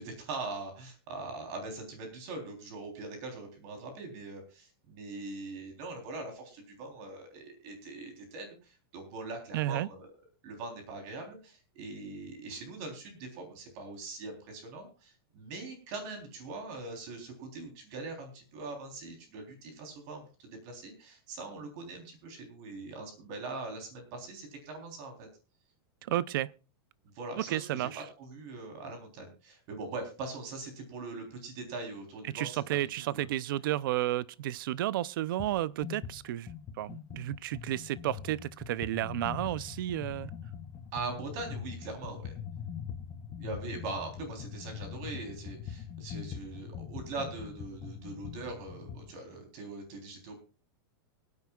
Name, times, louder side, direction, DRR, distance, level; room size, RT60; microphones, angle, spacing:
voice 1, 0.0-10.1 10.4-25.3 27.1-33.3 40.9-42.3 43.4-50.4, right 3 dB, 40° right, 3.5 m, -42 dB
voice 2, 9.5-9.9 26.0-26.5 27.4-28.0 32.3-36.5 36.8-40.3, right 14 dB, 55° right, 0.6 m, -32 dB
sound 1, 35.4-35.6 35.8-49.1, left 8 dB, 15° left, 0.7 m, -42 dB
24.5 x 9.5 x 2.4 m
supercardioid pair, 170°, 13 cm